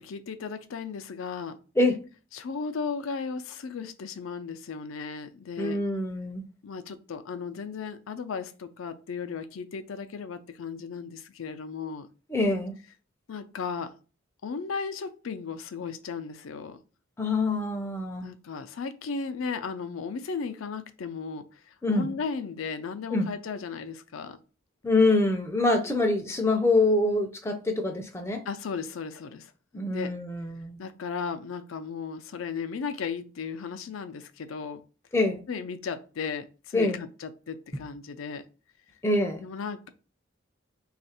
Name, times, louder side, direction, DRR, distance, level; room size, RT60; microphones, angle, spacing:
voice 1, 0.0-1.6 2.3-5.8 6.6-12.1 13.3-13.9 14.4-16.8 18.2-24.4 25.8-25.9 28.5-30.1 30.8-34.8 35.5-38.4 39.4-39.9, left 5 dB, 80° left, 0.4 m, -35 dB
voice 2, 5.6-6.4 12.3-12.8 17.2-18.3 21.8-22.1 23.1-23.3 24.8-28.4 29.7-30.8 35.1-35.4 36.7-37.0 39.0-39.4, left 2 dB, 15° left, 0.4 m, -25 dB
3.4 x 2.4 x 4.2 m
head